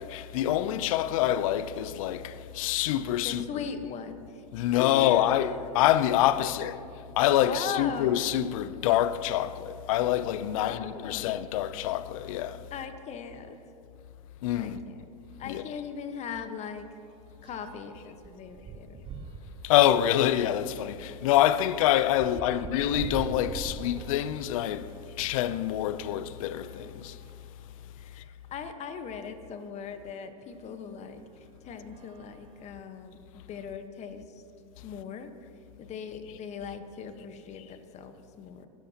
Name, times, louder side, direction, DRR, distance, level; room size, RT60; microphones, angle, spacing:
voice 1, 0.0-3.4 4.5-6.8 7.2-12.6 14.4-14.8 15.4-15.7 19.6-27.2, left 12 dB, 65° left, 0.6 m, -26 dB
voice 2, 3.2-4.4 4.8-5.8 6.3-6.5 7.4-8.2 10.6-11.3 12.7-13.6 14.6-15.0 15.4-16.9 17.4-19.0 22.2-22.6 28.0-34.4 34.8-35.3 35.8-38.7, left 6 dB, 35° left, 1.3 m, -40 dB
sound 1, 15.1-15.2 15.6-15.8 16.1-25.5 26.3-27.6 28.3-28.4 28.6-28.7 30.4-30.5 31.2-31.5 31.8-33.1, right 5 dB, 30° right, 1.0 m, -45 dB
23.0 x 13.0 x 3.0 m
hypercardioid pair, 95°, 19 cm